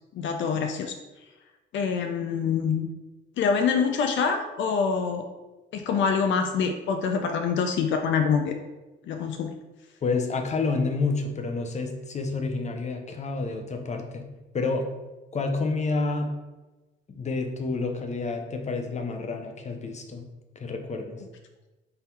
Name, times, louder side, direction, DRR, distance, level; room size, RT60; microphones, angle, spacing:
voice 1, 0.1-1.0 1.7-2.9 3.4-5.3 5.7-8.6 9.1-9.5 21.2-21.3, left 6 dB, 70° left, 5 dB, 0.4 m, -25 dB
voice 2, 10.0-14.3 14.5-14.9 15.3-16.3 17.1-20.2 20.6-21.2, left 3 dB, 35° left, 5 dB, 0.7 m, -29 dB
3.8 x 2.6 x 4.3 m, 1.1 s
cardioid pair, 90°, 20 cm